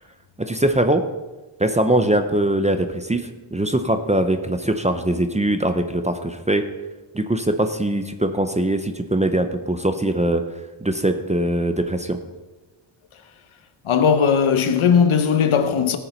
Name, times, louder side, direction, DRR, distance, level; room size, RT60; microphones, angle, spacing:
voice 1, 0.4-1.0 1.6-6.7 7.1-10.4 10.8-12.2, right 1 dB, 15° right, 0.6 m, -21 dB
voice 2, 13.9-16.0, left 7 dB, 75° left, 1.1 m, -17 dB
18.5 x 6.9 x 4.4 m
wide cardioid pair, 160°, 50 cm